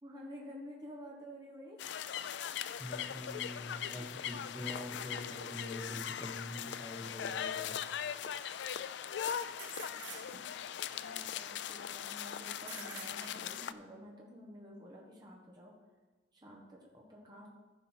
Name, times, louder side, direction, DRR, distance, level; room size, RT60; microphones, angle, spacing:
voice 1, 0.0-1.8 9.8-10.3 10.9-15.7 16.3-17.5, equal, 20° right, -2 dB, 1.4 m, -51 dB
sound 1, 1.8-13.7, left 9 dB, 70° left, 0.3 m, -40 dB
voice 2, 2.8-7.7, left 1 dB, ahead, -4 dB, 1.8 m, -44 dB
sound 2, 7.2-7.3 9.6-10.7 12.6-13.7, right 6 dB, 80° right, 1.5 m, -48 dB
14.5 x 5.4 x 4.5 m, 1.3 s
head